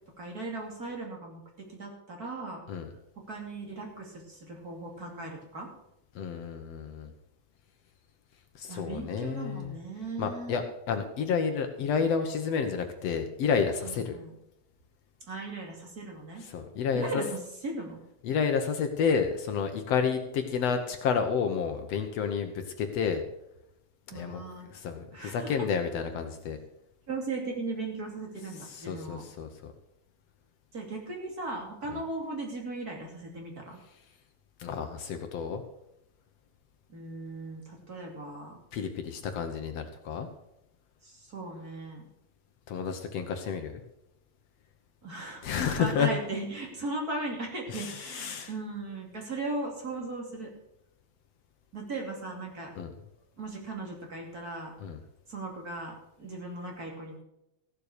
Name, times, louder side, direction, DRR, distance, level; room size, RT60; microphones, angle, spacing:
voice 1, 0.2-2.6 3.3-5.7 8.7-10.6 13.8-14.3 15.3-16.4 16.9-18.0 24.1-24.7 25.1-25.5 27.1-29.2 30.7-33.8 36.9-38.6 41.0-42.1 45.0-45.4 45.8-50.5 51.7-52.7 53.4-54.7 55.3-57.2, right 2 dB, 30° right, 0 dB, 2.9 m, -37 dB
voice 2, 6.2-7.1 8.6-9.8 10.2-14.2 16.5-17.2 18.2-23.2 24.1-24.4 24.7-26.6 28.7-29.7 34.6-35.6 38.7-40.3 42.7-43.8 45.4-46.1 47.7-48.5 52.8-52.9 54.8-55.0, left 6 dB, 65° left, 6 dB, 2.0 m, -30 dB
15.0 x 7.6 x 6.6 m, 0.83 s
omnidirectional pair, 3.3 m